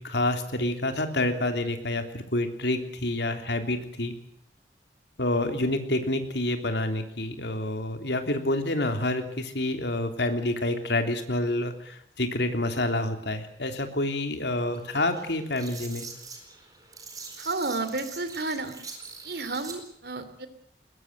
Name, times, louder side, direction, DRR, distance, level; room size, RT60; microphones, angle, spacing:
voice 1, 0.0-4.1 5.2-16.1, left 1 dB, 75° left, 6 dB, 3.3 m, -28 dB
sound 1, 14.7-19.8, right 4 dB, 20° right, 4.4 m, -44 dB
voice 2, 17.4-18.8 19.2-20.5, right 3 dB, 60° right, 11 dB, 2.9 m, -31 dB
21.5 x 20.5 x 8.0 m, 0.73 s
head